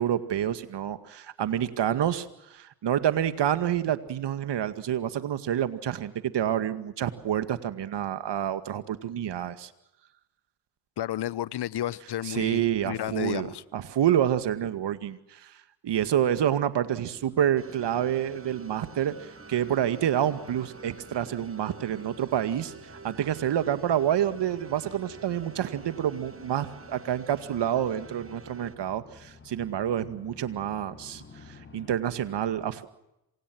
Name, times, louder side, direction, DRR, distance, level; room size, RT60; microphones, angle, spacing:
voice 1, 0.0-9.7 12.3-22.7 23.0-32.9, right 10 dB, 60° right, 2.1 m, -28 dB
voice 2, 11.0-13.6, left 12 dB, 60° left, 1.1 m, -32 dB
sound 1, 17.1-31.9, left 3 dB, 25° left, 6.6 m, -52 dB
sound 2, 17.6-28.8, right 5 dB, 30° right, 2.1 m, -49 dB
27.0 x 25.0 x 6.3 m
hypercardioid pair, 50°, 46 cm